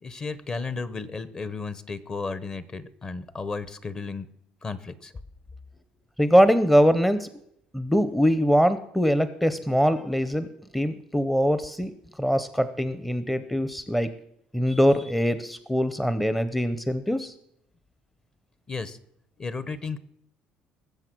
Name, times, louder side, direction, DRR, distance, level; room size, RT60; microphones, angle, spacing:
voice 1, 0.0-4.3 4.6-5.1 18.7-19.0 19.4-20.0, left 4 dB, 30° left, 15 dB, 1.0 m, -34 dB
voice 2, 6.2-7.3 7.7-11.9 12.2-14.1 14.5-17.3, equal, 5° left, 12 dB, 0.7 m, -22 dB
20.0 x 7.5 x 6.1 m, 0.74 s
cardioid pair, 120°, 3 cm